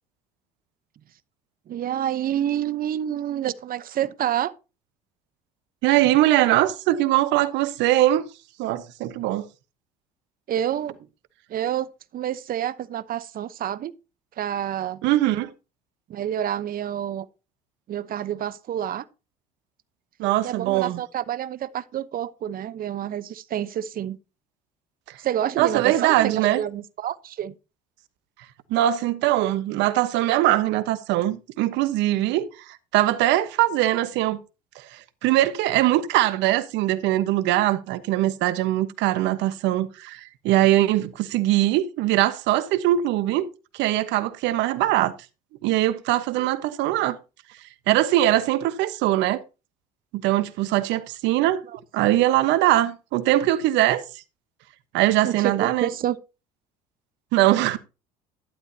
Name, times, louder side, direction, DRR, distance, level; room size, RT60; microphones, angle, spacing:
voice 1, 1.7-4.5 10.5-11.0 11.5-13.9 14.4-15.0 16.1-17.3 17.9-19.1 20.4-24.2 25.2-27.5 51.7-51.8 55.2-56.2, right 10 dB, 50° right, 1.0 m, -28 dB
voice 2, 5.8-8.2 8.6-9.4 15.0-15.5 20.2-21.0 25.6-26.6 28.7-32.5 32.9-34.4 34.7-43.5 43.7-45.1 45.6-47.2 47.9-49.4 50.1-51.6 51.9-54.0 54.9-55.9 57.3-57.8, right 14 dB, 65° right, 1.2 m, -21 dB
11.5 x 11.5 x 2.8 m
hypercardioid pair, 70°, 20 cm